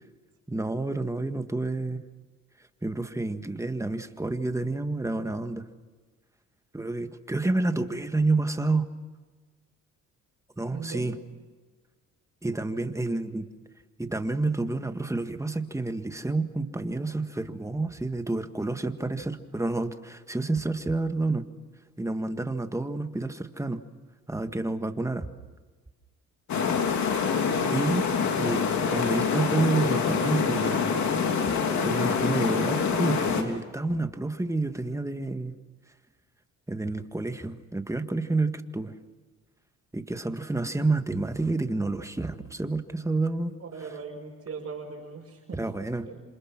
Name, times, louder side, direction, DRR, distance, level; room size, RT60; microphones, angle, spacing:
voice 1, 0.5-2.0 2.8-5.7 6.7-8.9 10.6-11.2 12.4-13.5 14.0-21.5 22.0-23.8 24.3-25.3 27.7-28.1 28.4-31.0 31.8-35.5 36.7-39.0 39.9-43.6 45.6-46.1, right 2 dB, 10° right, 8 dB, 1.7 m, -29 dB
voice 2, 10.7-11.1 43.6-45.6 46.0-46.2, right 5 dB, 50° right, -3 dB, 6.0 m, -40 dB
sound 1, 26.5-33.4, left 6 dB, 70° left, 3.4 m, -26 dB
27.5 x 27.0 x 6.1 m, 1.3 s
cardioid pair, 90°, 30 cm